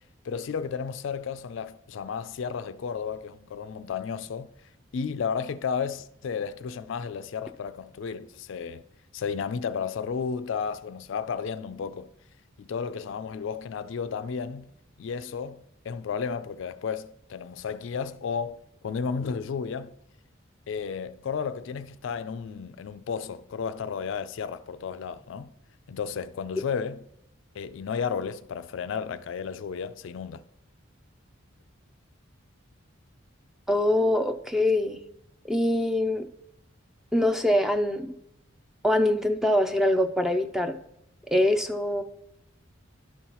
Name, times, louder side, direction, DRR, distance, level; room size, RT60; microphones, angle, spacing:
voice 1, 0.2-4.5 4.9-8.8 9.1-12.1 12.6-14.7 15.0-19.9 20.7-25.5 25.9-27.0 27.5-30.4, left 6 dB, 65° left, 0.3 m, -33 dB
voice 2, 33.7-35.0 35.5-36.3 37.1-38.1 38.8-40.8 41.3-42.0, left 1 dB, ahead, 0.4 m, -24 dB
11.5 x 5.5 x 2.9 m
head